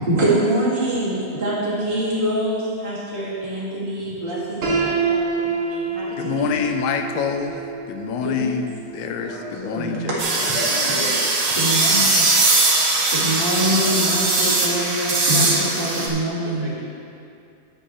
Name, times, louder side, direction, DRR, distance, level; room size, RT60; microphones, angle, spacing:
voice 1, 0.0-6.1 6.3-6.5 8.2-8.5 9.7-10.6 11.5-12.2 13.1-16.7, right 1 dB, 90° right, -9 dB, 0.4 m, -25 dB
Piano, 4.6-10.5, right 4 dB, 45° right, 2.2 m, -28 dB
voice 2, 6.2-10.1 10.4-10.5, left 6 dB, 85° left, 5 dB, 2.5 m, -26 dB
voice 3, 9.2-10.1 10.4-11.3 16.4-16.8, left 1 dB, 55° left, -9 dB, 1.3 m, -34 dB
sound 1, 10.2-16.1, right 3 dB, 65° right, 1.4 m, -20 dB
10.0 x 10.0 x 3.1 m, 2.5 s
omnidirectional pair, 4.7 m